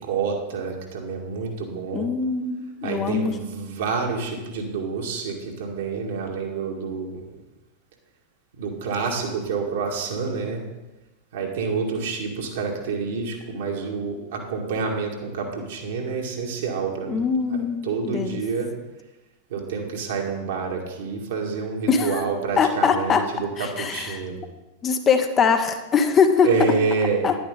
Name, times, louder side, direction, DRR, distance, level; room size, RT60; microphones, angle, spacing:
voice 1, 0.0-2.1 2.8-7.2 8.6-10.7 11.3-17.2 17.5-17.6 17.8-18.7 19.5-24.4 26.4-27.3, right 5 dB, 60° right, 1 dB, 2.0 m, -28 dB
voice 2, 1.9-3.3 17.1-18.4 21.9-23.2 23.6-24.2 24.8-26.5 27.2-27.4, left 6 dB, 25° left, 7 dB, 0.8 m, -22 dB
10.5 x 9.9 x 3.8 m, 1.1 s
figure-of-eight pair, 90°, 0 cm